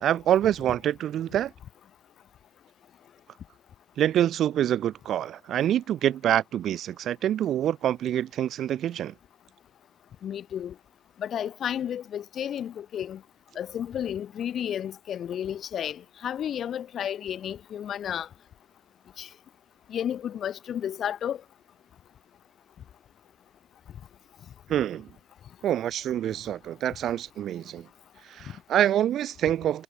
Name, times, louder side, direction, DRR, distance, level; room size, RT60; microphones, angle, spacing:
voice 1, 0.0-1.5 4.0-9.1 24.7-25.1 25.6-27.9 28.3-29.8, right 11 dB, 75° right, 1.4 m, -26 dB
voice 2, 10.2-10.8 11.2-13.2 13.6-18.3 19.2-19.3 19.9-21.4 28.5-28.6, left 9 dB, 65° left, 1.9 m, -32 dB
cardioid pair, 90°, 0 cm